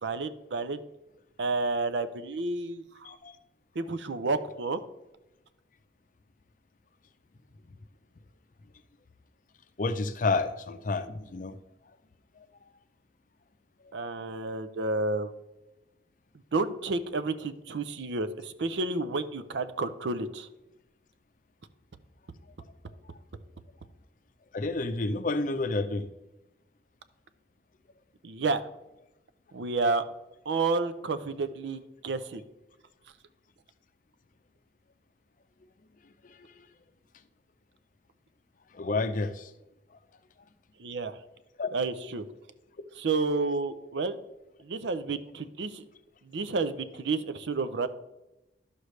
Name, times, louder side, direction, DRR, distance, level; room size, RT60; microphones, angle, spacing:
voice 1, 0.0-0.8 1.4-3.1 3.8-4.8 13.9-15.3 16.5-20.5 28.2-28.7 29.5-30.0 30.5-32.4 40.8-41.2 41.7-42.2 43.0-44.2 44.6-45.9 46.2-47.9, right 3 dB, 75° right, 12 dB, 0.6 m, -30 dB
voice 2, 3.0-3.4 9.8-11.6 12.4-12.5 24.5-26.1 36.2-36.5 38.7-39.5 41.6-41.7, left 3 dB, 45° left, 11 dB, 0.5 m, -30 dB
11.5 x 6.5 x 3.2 m, 0.97 s
head